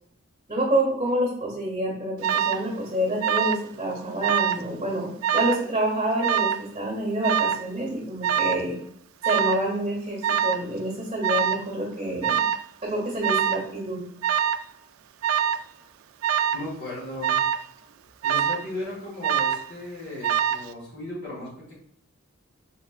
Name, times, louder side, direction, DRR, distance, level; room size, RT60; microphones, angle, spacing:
voice 1, 0.5-8.7 9.2-12.4 12.9-14.0, right 1 dB, 25° right, -3 dB, 1.0 m, -27 dB
Alarm, 2.2-2.7 3.2-3.7 4.0-4.7 5.2-5.6 6.2-6.7 7.2-7.7 8.2-8.7 9.2-9.7 10.2-10.7 11.2-11.7 12.2-12.7 13.2-13.7 14.2-14.7 15.2-15.7 16.2-16.7 17.2-17.7 18.2-18.7 19.2-19.7 20.2-20.7, right 9 dB, 90° right, 0.3 m, -24 dB
voice 2, 16.5-17.4 18.2-21.7, left 1 dB, 55° left, -5 dB, 1.5 m, -36 dB
5.2 x 3.9 x 2.3 m, 0.70 s
head